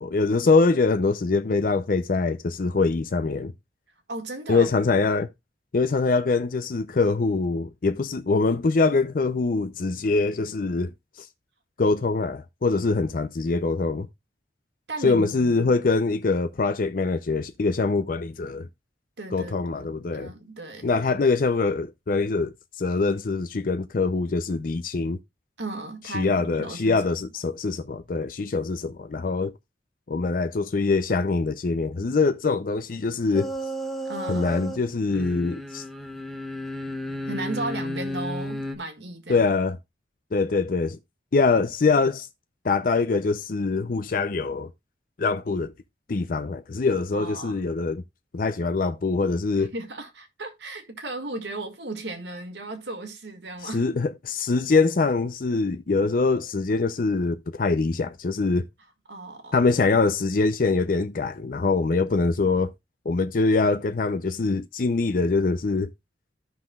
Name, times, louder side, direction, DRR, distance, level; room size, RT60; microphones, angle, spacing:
voice 1, 0.0-3.5 4.5-5.3 5.7-10.9 11.2-11.3 11.8-14.1 15.0-18.7 19.3-20.3 20.8-25.2 26.1-29.5 30.1-33.5 34.3-35.8 39.3-39.8 40.3-41.0 41.3-42.3 42.6-44.7 45.2-45.7 46.1-48.0 48.3-49.7 53.7-58.7 59.5-62.7 63.1-65.9, left 3 dB, 50° left, 0.5 m, -24 dB
voice 2, 4.1-4.8 14.9-15.7 19.2-20.9 25.6-27.1 34.0-34.8 37.3-39.5 47.1-47.6 49.6-53.9 59.1-59.6, right 2 dB, 75° right, 1.9 m, -35 dB
sound 1, 33.3-34.8 35.1-38.8, equal, ahead, 0.8 m, -33 dB
14.0 x 5.8 x 2.3 m
head